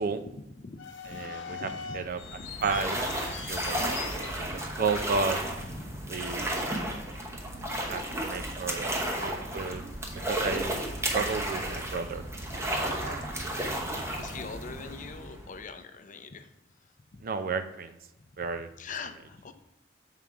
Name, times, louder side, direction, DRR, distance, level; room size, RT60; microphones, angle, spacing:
voice 1, 0.0-2.0 2.4-2.5 4.4-4.6 5.6-6.1 8.7-9.3 10.6-10.8 11.1-11.3 13.9-16.5 17.1-17.2 18.2-18.3 18.8-19.5, left 4 dB, 45° left, 9 dB, 0.5 m, -44 dB
sound 1, 0.8-6.1 6.4-6.5 7.2-7.4 7.9-8.0 8.6-9.2 9.5-12.0, left 6 dB, 90° left, 0.9 m, -43 dB
voice 2, 1.1-2.2 2.6-3.0 3.5-3.9 4.5-5.4 6.1-7.1 7.9-8.9 9.2-9.8 10.3-10.8 11.1-12.2 12.7-13.4 13.8-14.0 17.2-18.0 18.4-18.7, right 4 dB, 50° right, 10 dB, 0.5 m, -33 dB
sound 2, 1.9-15.7, right 1 dB, 15° right, 0.9 m, -33 dB
7.1 x 3.8 x 4.7 m, 0.89 s
head